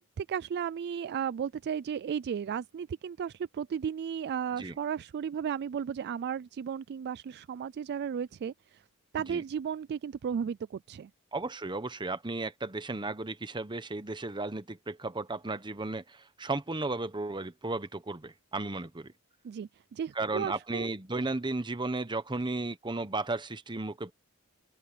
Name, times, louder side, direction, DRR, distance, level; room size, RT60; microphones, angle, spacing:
voice 1, 0.0-8.8 9.1-11.1 19.4-20.9, right 7 dB, 50° right, 0.3 m, -34 dB
voice 2, 11.3-19.1 20.1-24.1, right 2 dB, 20° right, 1.0 m, -34 dB
head